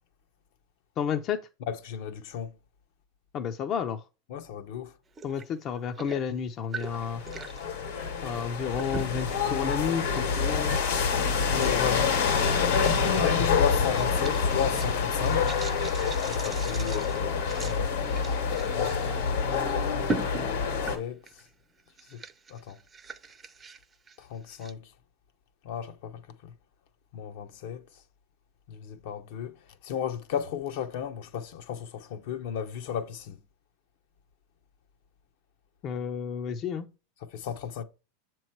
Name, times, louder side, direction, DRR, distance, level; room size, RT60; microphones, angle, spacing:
voice 1, 1.0-1.4 3.3-4.0 5.2-7.2 8.2-10.8 35.8-36.9, left 7 dB, 40° left, 0.5 m, -31 dB
voice 2, 1.7-2.6 4.3-4.9 11.2-12.3 13.1-15.5 16.3-17.9 18.5-19.5 20.5-21.2 22.1-22.2 22.5-22.8 24.2-24.9 25.6-26.5 27.1-27.8 28.7-29.6 29.8-33.4 37.2-37.8, left 8 dB, 65° left, 0.7 m, -34 dB
sound 1, 5.2-5.5 5.7-7.6 8.8-9.3 9.9-10.1 10.9-11.0 11.6-12.1 12.8-13.2 13.6-18.9 19.3-19.4 20.0-21.5 21.8-24.7, right 3 dB, 20° right, 0.5 m, -39 dB
sound 2, 6.9-21.0, left 5 dB, 80° left, 1.6 m, -27 dB
7.1 x 3.0 x 4.5 m
hypercardioid pair, 120°, 0 cm